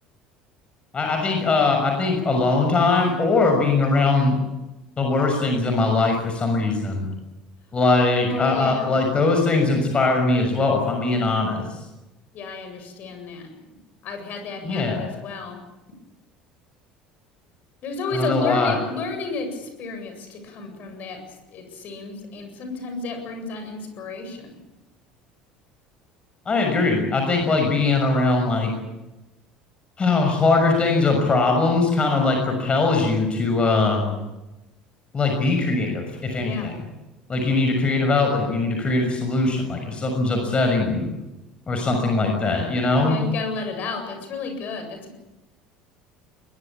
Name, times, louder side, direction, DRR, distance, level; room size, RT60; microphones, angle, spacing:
voice 1, 0.9-4.4 5.0-7.1 7.7-11.6 14.6-15.1 18.1-18.8 26.5-28.7 30.0-34.1 35.1-36.7 37.3-41.1 41.7-43.2, left 3 dB, 30° left, 3 dB, 6.3 m, -21 dB
voice 2, 8.2-9.0 12.3-13.5 14.0-15.6 17.8-21.2 21.5-24.6 36.4-36.7 43.0-45.2, left 4 dB, 45° left, 6 dB, 7.9 m, -32 dB
23.0 x 21.0 x 8.7 m, 1.0 s
figure-of-eight pair, 65°, 4 cm